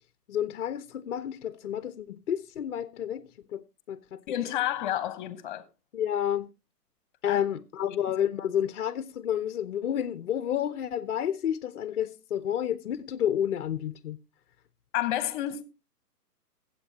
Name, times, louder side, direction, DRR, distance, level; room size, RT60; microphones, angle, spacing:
voice 1, 0.3-4.2 5.9-6.5 7.2-14.2, left 10 dB, 50° left, 0.7 m, -30 dB
voice 2, 4.3-5.6 7.3-7.4 14.9-15.6, left 12 dB, 30° left, 1.2 m, -30 dB
21.5 x 8.2 x 2.8 m
hypercardioid pair, 150°, 48 cm